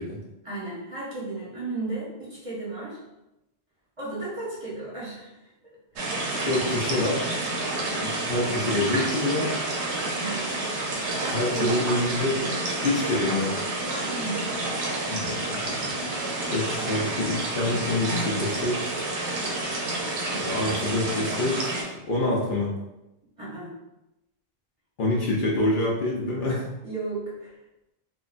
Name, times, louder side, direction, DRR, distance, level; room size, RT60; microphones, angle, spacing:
voice 1, 0.4-3.0 4.0-5.5 5.9-6.1 10.1-10.4 11.2-11.8 12.8-13.3 13.9-14.6 16.7-16.8 20.3-21.1 23.4-23.7 26.8-27.6, right 2 dB, 35° right, -7 dB, 0.7 m, -35 dB
sound 1, 6.0-21.8, right 2 dB, 90° right, 0.9 m, -29 dB
voice 2, 6.4-7.3 8.0-9.5 11.3-12.5 12.8-13.5 15.1-15.9 16.5-19.0 20.4-22.7 25.0-26.7, left 2 dB, 60° left, -4 dB, 0.7 m, -26 dB
2.9 x 2.2 x 2.4 m, 0.93 s
omnidirectional pair, 1.1 m